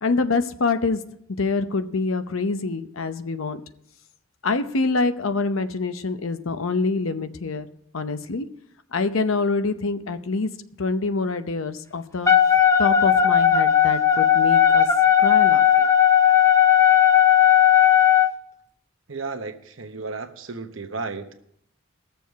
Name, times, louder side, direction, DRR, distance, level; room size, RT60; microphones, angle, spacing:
voice 1, 0.0-1.0 1.4-3.6 4.4-7.7 7.9-8.5 8.9-10.5 10.8-12.3 12.8-14.9 15.2-15.9, left 3 dB, 85° left, 10 dB, 0.7 m, -25 dB
Wind instrument woodwind instrument, 12.3-18.3, left 9 dB, 15° left, 0.6 m, -16 dB
voice 2, 19.1-21.4, right 4 dB, 70° right, 7 dB, 1.0 m, -33 dB
18.5 x 6.9 x 4.7 m, 0.71 s
head